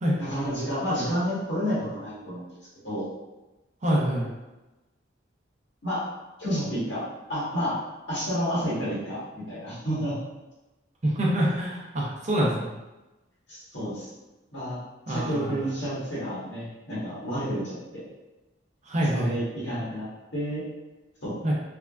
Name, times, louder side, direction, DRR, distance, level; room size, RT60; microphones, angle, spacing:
voice 1, 0.2-2.4 2.8-3.0 5.8-6.0 6.4-7.8 8.1-10.2 13.5-14.1 14.5-14.8 15.1-18.0 19.1-20.6 21.2-21.3, equal, 65° left, -9 dB, 1.4 m, -30 dB
voice 2, 3.8-4.3 11.0-12.7 15.1-15.5 18.9-19.4 21.4-21.5, right 1 dB, 40° right, -4 dB, 0.6 m, -25 dB
3.3 x 2.1 x 2.3 m, 1.1 s
head